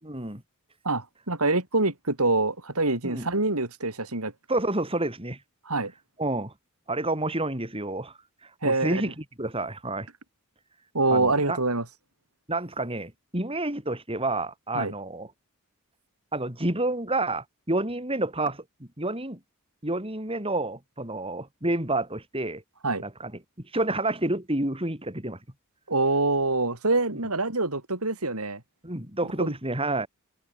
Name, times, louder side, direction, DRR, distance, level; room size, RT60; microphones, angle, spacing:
voice 1, 0.0-0.4 3.0-3.3 4.5-5.4 6.2-6.5 6.9-8.1 8.6-10.1 11.1-11.6 12.5-15.3 16.3-18.6 19.0-19.4 19.8-22.6 23.0-23.3 23.7-25.4 28.8-30.1, right 2 dB, 25° right, 6.8 m, -29 dB
voice 2, 0.8-4.3 5.6-5.9 8.6-9.0 10.9-11.8 14.7-14.9 22.8-23.0 25.9-28.6 29.4-29.5, right 2 dB, 85° right, 5.2 m, -25 dB
head